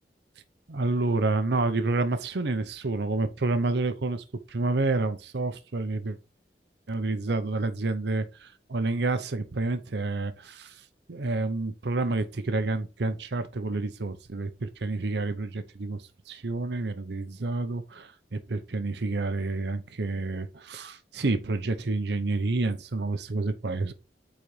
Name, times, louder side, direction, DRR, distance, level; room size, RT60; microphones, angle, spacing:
voice 1, 0.7-6.2 6.9-10.7 11.1-23.9, right 3 dB, 70° right, 0.7 m, -29 dB
8.7 x 4.1 x 3.2 m
head